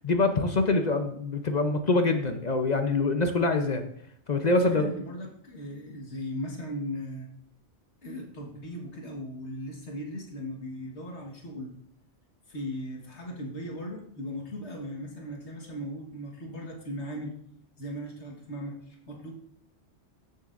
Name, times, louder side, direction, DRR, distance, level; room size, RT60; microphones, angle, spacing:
voice 1, 0.0-3.9 4.3-4.9, left 3 dB, 45° left, 6 dB, 0.7 m, -25 dB
voice 2, 4.6-7.3 8.0-11.7 12.5-17.4 17.8-19.3, equal, 80° left, 0 dB, 1.8 m, -38 dB
15.0 x 6.5 x 2.5 m, 0.67 s
omnidirectional pair, 1.1 m